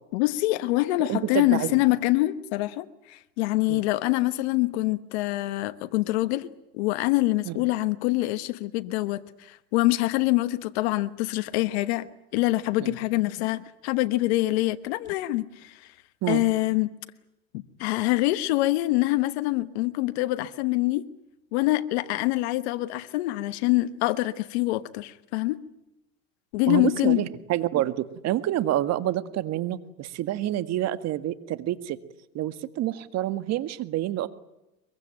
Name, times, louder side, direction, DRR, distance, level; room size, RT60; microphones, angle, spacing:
voice 1, 0.1-12.1 12.3-15.9 16.3-16.9 17.5-21.1 21.5-25.6 26.5-27.2, left 18 dB, 80° left, 1.2 m, -25 dB
voice 2, 1.1-1.8 3.7-3.8 7.5-7.6 12.8-13.0 16.2-16.5 26.7-32.0 32.3-34.3, right 13 dB, 55° right, 1.8 m, -28 dB
23.0 x 22.5 x 9.0 m
supercardioid pair, 110°, 32 cm